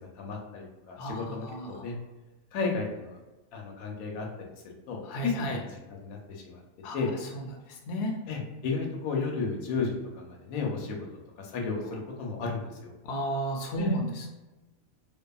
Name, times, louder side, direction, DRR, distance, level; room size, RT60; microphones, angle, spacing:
voice 1, 0.2-1.9 2.5-3.2 3.5-4.3 4.9-6.6 6.9-7.1 8.3-11.0 11.4-12.9 13.8-14.0, left 4 dB, 90° left, 0 dB, 1.1 m, -33 dB
voice 2, 1.0-1.7 5.1-5.6 6.8-7.0 7.9-8.1 13.0-14.1, right 1 dB, 65° left, 0 dB, 0.8 m, -32 dB
2.7 x 2.4 x 2.2 m, 1.1 s
omnidirectional pair, 1.4 m